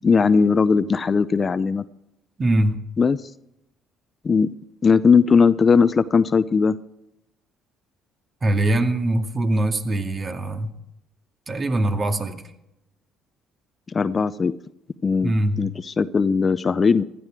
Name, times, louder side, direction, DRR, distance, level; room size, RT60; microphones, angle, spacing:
voice 1, 0.0-1.8 3.0-3.2 4.2-4.5 4.8-6.8 13.9-14.5 15.0-15.3 15.6-17.0, left 5 dB, 35° left, 15 dB, 0.6 m, -18 dB
voice 2, 2.4-2.8 8.4-10.7 11.5-12.4 15.2-15.6, right 1 dB, 35° right, 6 dB, 2.1 m, -22 dB
16.0 x 12.0 x 4.8 m, 0.83 s
hypercardioid pair, 65°, 0 cm